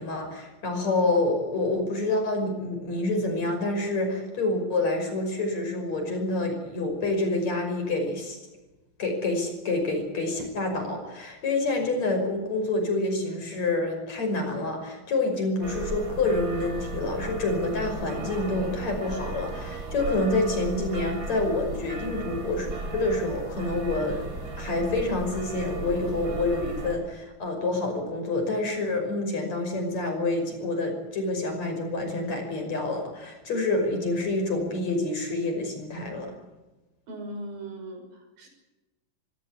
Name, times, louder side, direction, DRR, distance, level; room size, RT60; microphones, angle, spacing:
voice 1, 0.0-8.4 9.0-24.3 24.6-36.3, left 2 dB, 50° left, 5 dB, 6.8 m, -27 dB
sound 1, 15.6-27.0, right 3 dB, 25° right, 3.8 m, -35 dB
voice 2, 37.1-38.5, right 1 dB, 80° right, 4 dB, 7.5 m, -39 dB
25.5 x 17.0 x 8.5 m, 1.1 s
omnidirectional pair, 4.0 m